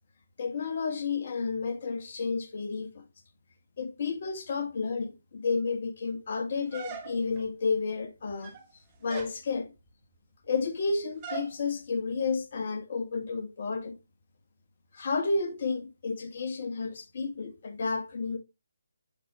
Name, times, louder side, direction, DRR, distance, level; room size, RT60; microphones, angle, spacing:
voice 1, 0.4-3.0 3.8-8.5 9.0-9.7 10.5-14.0 14.9-18.4, left 4 dB, 45° left, 1.6 m, -31 dB
sound 1, 6.7-7.5 8.3-8.7 9.1-9.4 11.2-11.6, right 6 dB, 25° right, 1.2 m, -40 dB
6.7 x 6.1 x 2.9 m
figure-of-eight pair, 150°, 0 cm